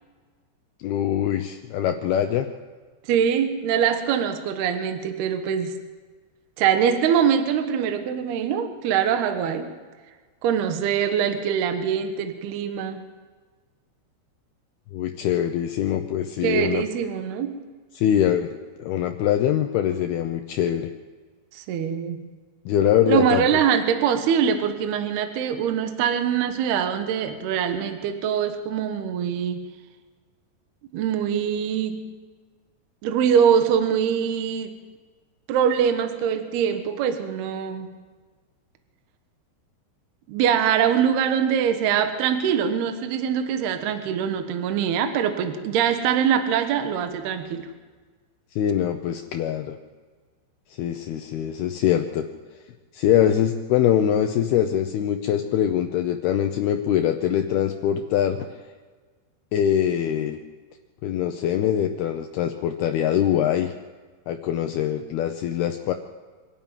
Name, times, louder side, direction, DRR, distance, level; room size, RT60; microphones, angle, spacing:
voice 1, 0.8-2.5 14.9-16.8 18.0-18.5 18.8-20.9 22.7-23.6 48.6-49.8 50.8-52.3 52.9-58.5 59.5-60.4 61.0-63.7 64.3-65.9, left 10 dB, 85° left, 6 dB, 2.2 m, -23 dB
voice 2, 3.1-5.8 6.6-9.7 10.4-13.0 16.4-17.6 21.5-22.2 23.1-29.7 30.9-32.1 33.0-34.8 35.5-37.9 40.3-47.7, right 8 dB, 65° right, 7 dB, 2.8 m, -23 dB
25.5 x 12.5 x 9.2 m, 1.4 s
omnidirectional pair, 5.7 m